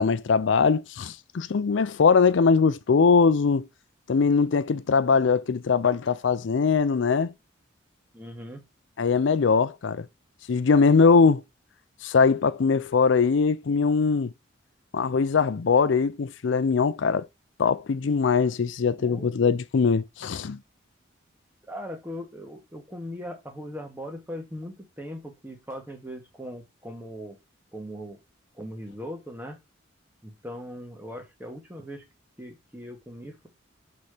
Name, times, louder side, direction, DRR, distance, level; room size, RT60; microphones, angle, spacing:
voice 1, 0.0-3.7 4.1-7.3 9.0-10.1 10.5-11.4 12.0-14.3 14.9-17.3 17.6-20.6, left 5 dB, 70° left, 0.4 m, -21 dB
voice 2, 8.1-8.6 11.2-11.3 19.0-19.3 21.7-27.4 27.7-28.2 28.6-29.6 30.2-32.0 32.4-33.5, equal, 10° right, 1.4 m, -39 dB
6.2 x 4.2 x 4.9 m
head